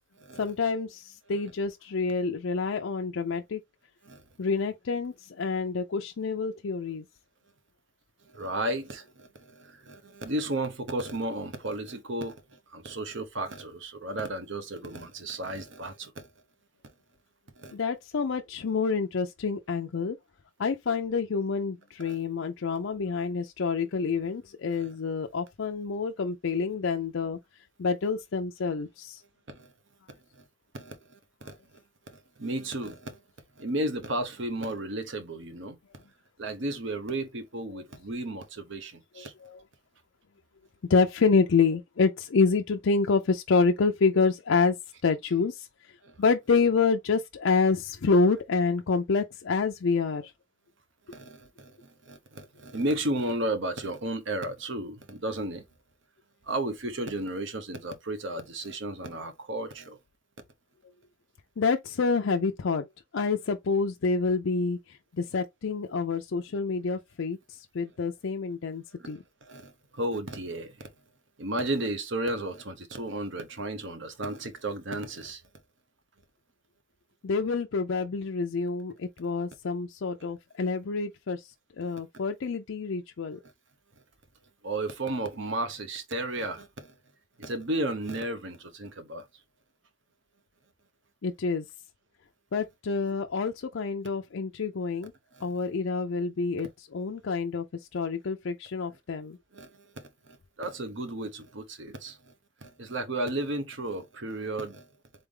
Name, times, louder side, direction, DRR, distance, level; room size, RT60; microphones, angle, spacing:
voice 1, 0.4-3.6 4.4-7.0 17.7-20.2 20.6-27.4 27.8-29.2 37.7-37.8 39.2-39.6 40.9-44.8 45.0-45.7 46.2-50.3 61.6-62.9 63.1-69.2 77.2-81.5 81.8-83.4 91.2-91.6 92.5-95.1 95.4-97.7 97.9-99.4, left 4 dB, 65° left, 0.5 m, -27 dB
voice 2, 8.3-16.3 17.6-17.7 22.0-22.2 24.7-24.9 29.5-29.7 30.3-30.4 30.7-31.6 32.1-33.2 33.6-35.8 36.4-39.3 46.0-46.1 51.1-55.6 56.4-60.0 69.0-70.9 71.4-75.4 81.8-81.9 84.6-86.9 87.4-89.3 95.3-95.5 99.5-102.3 102.6-104.9, right 1 dB, 60° right, 0.9 m, -34 dB
3.9 x 3.3 x 3.6 m
head